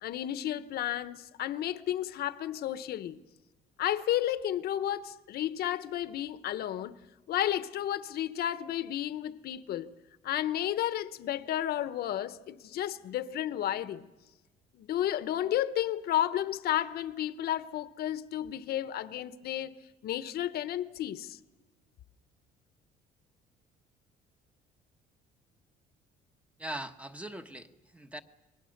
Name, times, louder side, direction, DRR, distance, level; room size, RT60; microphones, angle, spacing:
voice 1, 0.0-3.2 3.8-7.0 7.3-9.9 10.2-14.1 14.7-19.7 20.0-21.4, left 12 dB, 65° left, 1.0 m, -32 dB
voice 2, 26.6-28.2, right 1 dB, 10° right, 1.2 m, -41 dB
29.0 x 22.0 x 6.6 m
cardioid pair, 110°, 17 cm